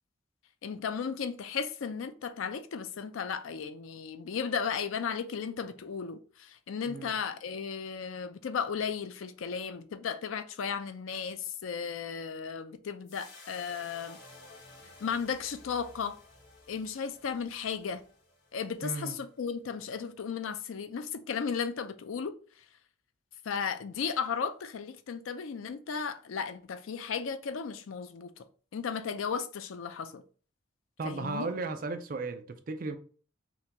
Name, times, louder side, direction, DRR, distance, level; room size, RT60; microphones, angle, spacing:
voice 1, 0.6-14.2 15.0-16.2 16.7-18.0 18.5-22.3 23.4-28.4 28.7-30.2 31.0-31.5, left 6 dB, 80° left, 0.4 m, -35 dB
sound 1, 13.1-19.4, left 2 dB, 65° left, 1.2 m, -54 dB
voice 2, 18.8-19.2 31.0-33.0, right 3 dB, 45° right, 0.4 m, -35 dB
5.7 x 2.2 x 2.9 m
head